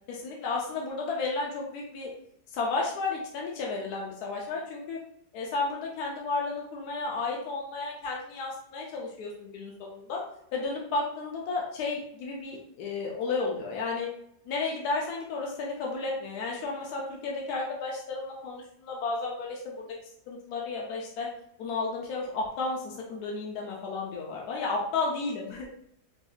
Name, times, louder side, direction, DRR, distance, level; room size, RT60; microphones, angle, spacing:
voice 1, 0.1-2.1 2.5-5.0 5.3-10.2 10.5-14.1 14.5-19.8 20.3-21.3 21.6-25.7, left 3 dB, 75° left, -2 dB, 1.2 m, -32 dB
3.9 x 2.7 x 2.4 m, 0.71 s
omnidirectional pair, 1.7 m